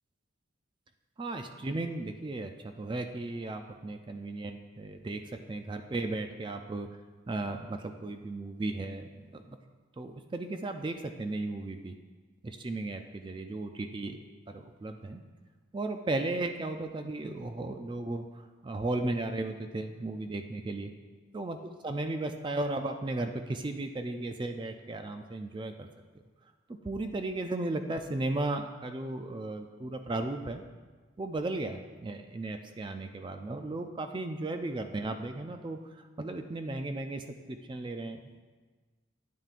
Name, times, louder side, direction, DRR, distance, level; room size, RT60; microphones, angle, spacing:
voice 1, 1.2-6.9 7.3-9.6 10.0-11.9 12.4-14.2 14.5-15.2 15.7-20.9 21.3-21.6 21.8-25.9 26.8-30.6 31.2-35.8 36.2-38.4, right 2 dB, 25° right, 7 dB, 0.3 m, -35 dB
9.3 x 8.8 x 2.5 m, 1.4 s
head